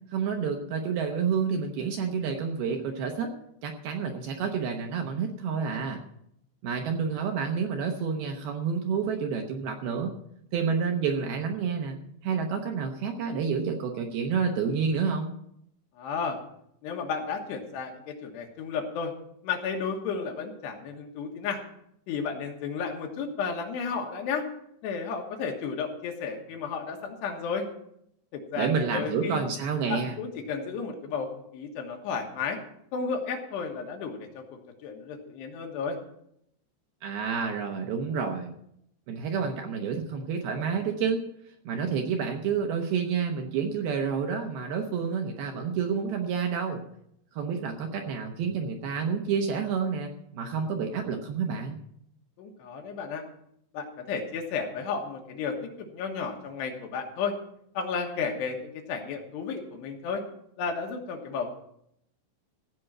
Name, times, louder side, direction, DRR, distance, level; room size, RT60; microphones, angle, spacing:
voice 1, 0.1-3.3 3.6-6.0 6.6-10.1 10.5-12.0 12.2-15.3 28.6-30.2 37.0-38.5 39.1-41.2 41.7-46.8 47.3-51.8, right 6 dB, 70° right, 3 dB, 2.5 m, -29 dB
voice 2, 16.0-16.4 16.8-19.1 19.4-21.6 22.1-24.5 24.8-27.7 28.3-29.4 29.9-32.6 32.9-34.4 34.8-36.0 52.4-53.2 53.7-57.3 57.7-60.2 60.6-61.5, left 5 dB, 70° left, 2 dB, 3.3 m, -33 dB
16.0 x 5.4 x 8.8 m, 0.74 s
omnidirectional pair, 5.4 m